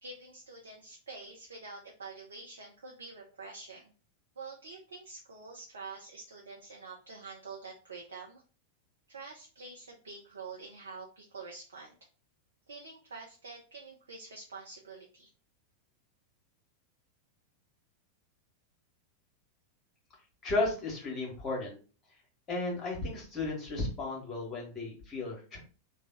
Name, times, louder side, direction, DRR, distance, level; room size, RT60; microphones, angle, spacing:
voice 1, 0.0-3.9 4.4-8.4 9.1-12.0 12.7-15.3, right 4 dB, 70° right, -1 dB, 0.7 m, -47 dB
voice 2, 20.4-21.8 22.5-25.6, left 2 dB, 25° left, -1 dB, 1.7 m, -34 dB
3.2 x 2.4 x 3.8 m, 0.37 s
figure-of-eight pair, 90°, 0 cm